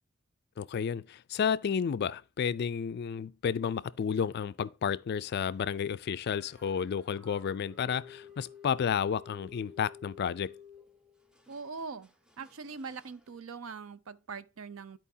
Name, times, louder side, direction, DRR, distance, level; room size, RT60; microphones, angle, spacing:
voice 1, 0.6-10.5, left 7 dB, 50° left, 0.3 m, -31 dB
sound 1, 5.1-13.4, left 6 dB, 5° right, 0.6 m, -55 dB
voice 2, 11.5-12.1 12.4-15.0, right 5 dB, 70° right, 0.5 m, -42 dB
12.5 x 4.5 x 2.7 m
head